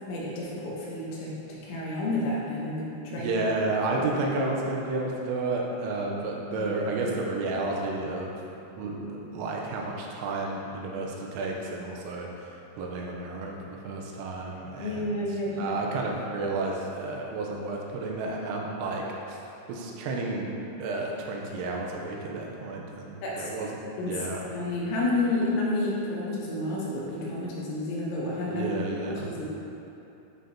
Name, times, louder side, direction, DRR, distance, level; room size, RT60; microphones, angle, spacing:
voice 1, 0.1-3.3 6.6-6.7 14.8-15.8 23.2-23.5 24.0-24.1 24.5-28.7 29.1-29.5, left 2 dB, 75° left, -5 dB, 3.2 m, -30 dB
voice 2, 3.1-8.3 8.8-12.5 12.8-15.2 15.6-19.4 19.7-20.5 20.8-23.7 24.1-24.4 28.5-29.3, right 2 dB, 85° right, -1 dB, 3.3 m, -31 dB
11.0 x 6.4 x 2.8 m, 2.8 s
omnidirectional pair, 5.9 m